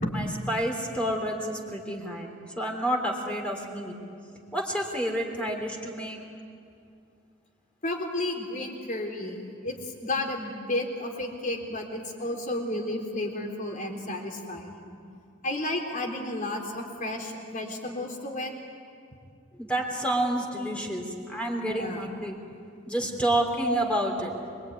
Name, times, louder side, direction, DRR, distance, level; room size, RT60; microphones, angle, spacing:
voice 1, 0.1-2.3 2.6-4.0 4.5-6.2 19.5-22.3 22.9-24.3, right 1 dB, 5° left, 1 dB, 3.4 m, -29 dB
voice 2, 7.8-14.7 15.4-18.5 21.7-22.1 23.6-23.8 24.1-24.2, left 1 dB, 40° left, 2 dB, 3.8 m, -32 dB
25.5 x 23.0 x 9.6 m, 2.4 s
head